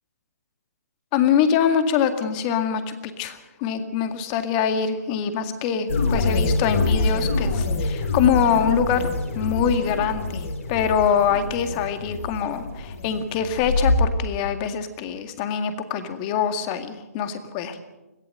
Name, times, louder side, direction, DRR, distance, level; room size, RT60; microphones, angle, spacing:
voice 1, 1.1-9.1 9.3-17.8, left 7 dB, 30° left, 9 dB, 2.0 m, -24 dB
sound 1, 5.9-14.0, left 2 dB, 55° left, 5.0 m, -25 dB
21.5 x 15.5 x 7.9 m, 1.0 s
hypercardioid pair, 145°, 9 cm